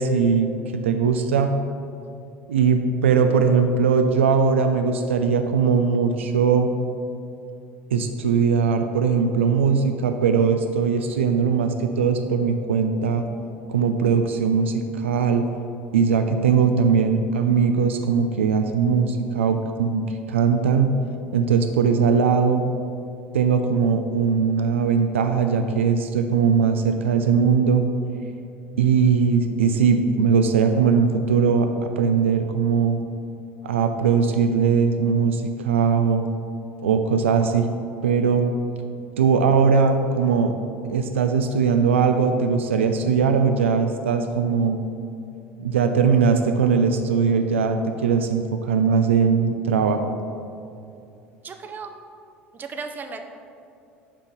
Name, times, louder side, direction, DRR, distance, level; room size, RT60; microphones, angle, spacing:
voice 1, 0.0-1.5 2.5-6.7 7.9-13.2 13.7-15.4 15.9-20.9 21.3-22.6 23.3-27.8 28.8-33.0 33.6-36.3 36.8-37.7 38.0-38.5 39.2-40.5 40.8-44.8 45.6-50.1, right 6 dB, 70° right, 6 dB, 0.3 m, -20 dB
voice 2, 51.4-51.9 52.5-53.2, right 5 dB, 25° right, 6 dB, 0.6 m, -35 dB
7.3 x 3.7 x 5.3 m, 2.6 s
figure-of-eight pair, 65°, 7 cm